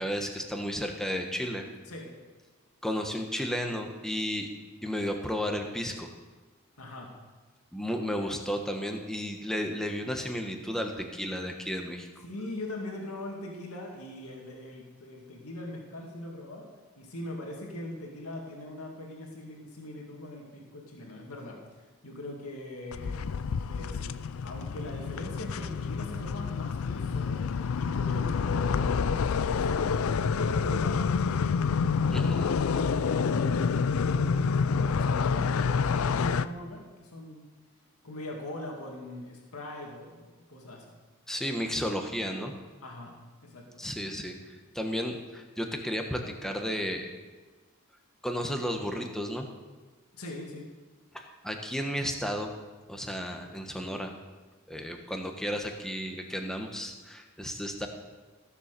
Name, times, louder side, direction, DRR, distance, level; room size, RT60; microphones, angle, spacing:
voice 1, 0.0-1.7 2.8-4.5 4.8-6.1 7.7-12.1 32.1-32.5 41.3-42.5 43.8-47.1 48.2-49.5 51.1-52.5 52.9-54.1 54.7-57.9, equal, ahead, 3 dB, 1.2 m, -33 dB
voice 2, 6.8-7.1 12.2-16.7 17.0-23.2 23.7-24.2 24.4-32.0 32.7-37.5 38.0-40.8 42.8-43.2 43.4-43.8 50.2-50.7, left 1 dB, 90° left, 0 dB, 2.2 m, -41 dB
sound 1, 22.9-36.5, left 5 dB, 70° left, 0.4 m, -28 dB
15.0 x 7.2 x 6.8 m, 1.3 s
head